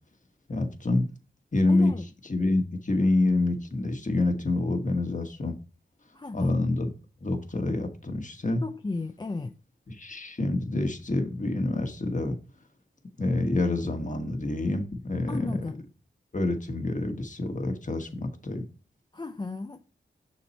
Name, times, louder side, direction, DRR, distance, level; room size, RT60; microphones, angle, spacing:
voice 1, 0.5-1.1 1.5-1.9 2.3-5.6 6.3-6.9 7.2-8.6 9.9-12.4 13.2-15.6 16.3-18.6, left 2 dB, 40° left, 1.3 m, -27 dB
voice 2, 1.7-2.1 6.1-6.6 8.6-9.5 15.3-15.8 19.1-19.8, left 3 dB, 25° left, 0.5 m, -34 dB
6.3 x 4.1 x 4.3 m
cardioid pair, 50°, 20 cm